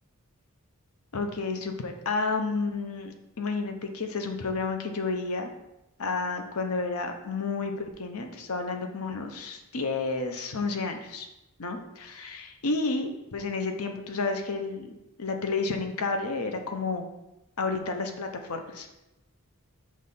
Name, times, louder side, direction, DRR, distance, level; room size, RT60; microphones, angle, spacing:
voice 1, 1.1-5.5 6.0-11.3 11.6-14.9 15.2-17.0 17.6-19.0, left 3 dB, 80° left, 5 dB, 0.8 m, -31 dB
6.1 x 3.2 x 5.5 m, 0.94 s
head